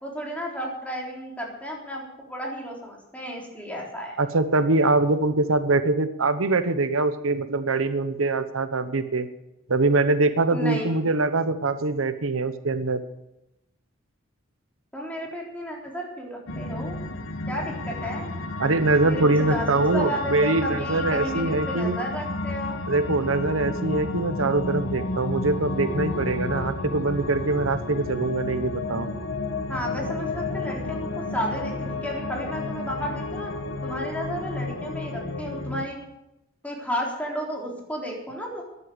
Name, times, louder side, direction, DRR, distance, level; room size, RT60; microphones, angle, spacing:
voice 1, 0.0-2.0 2.3-4.2 10.5-11.0 14.9-17.0 17.5-18.4 19.0-22.8 29.7-33.5 33.8-36.0 36.6-38.6, equal, 5° left, -2 dB, 3.8 m, -33 dB
voice 2, 4.2-9.3 9.7-13.0 18.6-22.0 22.9-29.1, right 3 dB, 85° right, 11 dB, 1.0 m, -23 dB
sound 1, 16.5-35.8, left 3 dB, 75° left, 1.3 m, -31 dB
13.5 x 11.0 x 8.0 m, 0.91 s
head